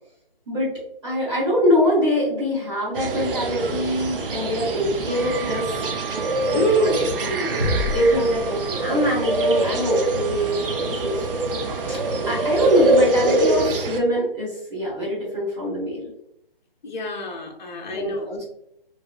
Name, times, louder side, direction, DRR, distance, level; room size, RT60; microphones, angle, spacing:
voice 1, 1.0-5.6 6.5-11.1 11.9-12.0 12.2-16.1 17.9-18.4, equal, 30° right, -9 dB, 1.2 m, -23 dB
sound 1, 3.0-14.0, right 2 dB, 65° right, 0.5 m, -24 dB
Wind instrument woodwind instrument, 5.1-13.7, right 7 dB, 45° right, 0.9 m, -40 dB
voice 2, 6.5-7.0 16.8-18.3, right 1 dB, 50° left, 2 dB, 0.6 m, -25 dB
sound 2, 7.6-9.3, left 1 dB, 10° right, 0.6 m, -28 dB
2.9 x 2.2 x 2.3 m, 0.74 s
figure-of-eight pair, 150°, 30 cm